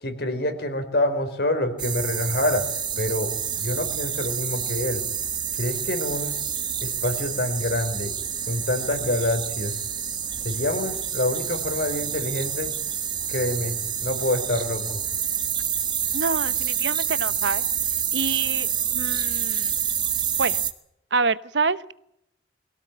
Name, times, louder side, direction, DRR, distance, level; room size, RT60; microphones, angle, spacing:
voice 1, 0.0-5.0 5.6-6.3 6.8-8.1 8.5-9.7 10.4-12.7 13.3-15.0, left 1 dB, 60° left, 8 dB, 4.2 m, -27 dB
sound 1, 1.8-20.7, right 8 dB, 25° right, 1.4 m, -28 dB
voice 2, 16.1-17.6 18.1-19.7 20.4-20.6 21.1-21.9, right 4 dB, 80° right, 15 dB, 1.0 m, -27 dB
23.5 x 17.0 x 9.0 m, 0.77 s
head